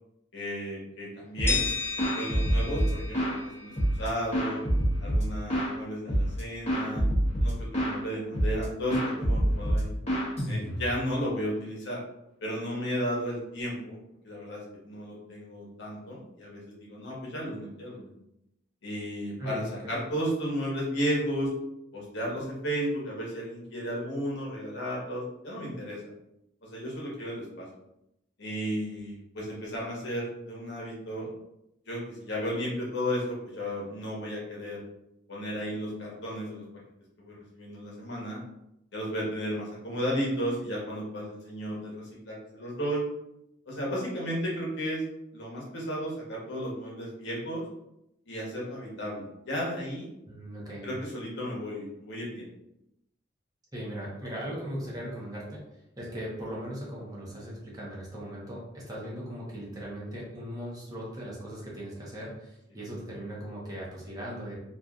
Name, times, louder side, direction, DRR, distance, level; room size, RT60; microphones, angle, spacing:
voice 1, 0.3-1.6 2.0-4.6 5.0-7.0 7.4-9.9 10.5-12.0 12.4-14.0 14.2-18.1 18.8-21.5 21.9-26.0 26.6-27.7 28.4-31.3 31.9-34.8 35.3-36.6 37.2-38.4 38.9-43.0 43.7-45.0 45.3-47.6 48.3-50.1 50.8-52.5, equal, 60° left, -4 dB, 1.0 m, -34 dB
sound 1, 1.4-1.7 2.0-3.4 3.8-5.7 6.1-6.4 6.7-8.0 8.3-8.6 8.9-11.0, equal, 35° left, 0.9 m, -26 dB
sound 2, 1.5-4.4, left 4 dB, 10° left, 0.4 m, -34 dB
voice 2, 19.4-20.0 50.3-50.9 53.7-55.6 56.0-64.6, equal, 20° right, -5 dB, 0.8 m, -38 dB
3.1 x 2.5 x 2.4 m, 0.83 s
head